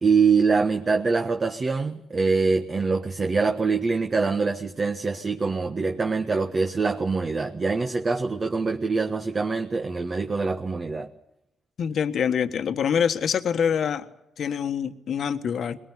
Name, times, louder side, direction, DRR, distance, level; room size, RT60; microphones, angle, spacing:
voice 1, 0.0-11.1, right 4 dB, 35° right, 5 dB, 1.4 m, -24 dB
voice 2, 11.8-14.0 14.4-15.8, left 7 dB, 65° left, 9 dB, 1.4 m, -25 dB
21.5 x 19.0 x 9.9 m, 0.85 s
cardioid pair, 85°, 0 cm